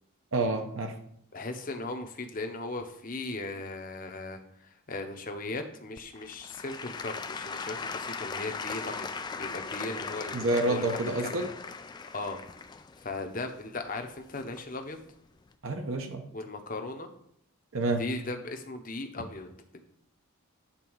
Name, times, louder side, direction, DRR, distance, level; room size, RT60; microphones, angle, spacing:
voice 1, 0.3-0.9 10.3-11.5 15.6-16.3 17.7-18.0, right 2 dB, 60° right, 5 dB, 0.9 m, -28 dB
voice 2, 1.3-4.4 4.9-11.5 12.1-12.4 13.0-15.0 16.3-17.1 18.0-19.8, left 2 dB, 40° left, 5 dB, 0.9 m, -37 dB
Applause / Crowd, 6.0-14.8 15.5-15.6, left 4 dB, 20° left, 0.3 m, -39 dB
9.0 x 4.1 x 6.2 m, 0.70 s
head